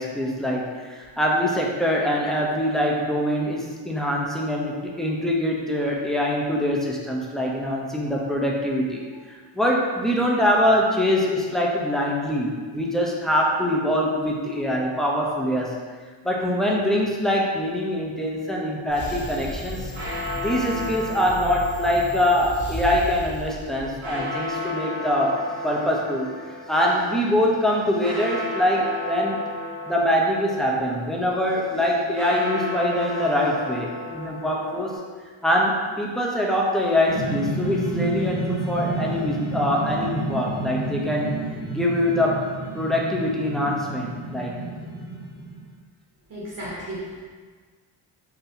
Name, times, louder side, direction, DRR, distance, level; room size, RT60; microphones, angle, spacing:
voice 1, 0.0-9.0 9.3-15.7 16.2-19.9 20.4-26.3 26.7-29.4 29.9-35.0 35.4-41.3 41.7-42.4 42.7-44.6, equal, ahead, -3 dB, 0.5 m, -24 dB
sound 1, 18.9-24.3, right 1 dB, 40° left, 1.4 m, -35 dB
sound 2, 19.6-35.0, left 2 dB, 75° right, 1.2 m, -34 dB
sound 3, 37.1-45.7, right 2 dB, 60° left, 1.0 m, -30 dB
voice 2, 46.3-47.2, equal, 45° right, -6 dB, 1.0 m, -34 dB
3.9 x 2.7 x 2.7 m, 1.5 s
cardioid pair, 85°, 47 cm